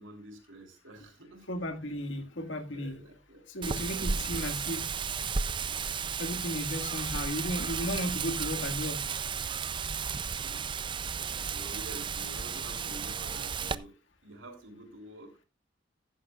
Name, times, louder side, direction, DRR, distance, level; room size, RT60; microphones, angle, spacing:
voice 1, 0.0-1.5 2.7-4.4 10.2-13.9 14.2-15.5, right 1 dB, 90° right, 4 dB, 3.4 m, -49 dB
voice 2, 1.5-3.0 3.5-4.9 6.2-9.0, left 1 dB, 75° left, 5 dB, 2.0 m, -35 dB
Wind, 3.6-13.7, right 6 dB, 25° right, 0.4 m, -34 dB
15.0 x 11.5 x 2.4 m, 0.26 s
head